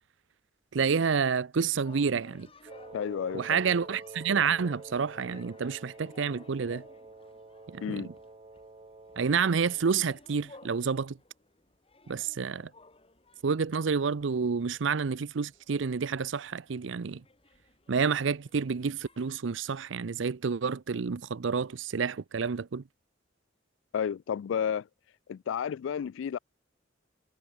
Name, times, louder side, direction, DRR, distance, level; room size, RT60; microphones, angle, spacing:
voice 1, 0.7-2.5 3.3-6.8 7.7-8.0 9.2-11.2 12.1-12.7 13.4-17.2 17.9-22.8, right 5 dB, 75° right, 0.5 m, -29 dB
sound 1, 1.8-19.4, left 2 dB, 30° left, 4.8 m, -57 dB
Wind instrument woodwind instrument, 2.7-10.0, right 2 dB, 30° right, 0.8 m, -48 dB
voice 2, 2.9-3.6 7.8-8.1 23.9-24.9 25.3-26.4, left 8 dB, 80° left, 0.3 m, -31 dB
head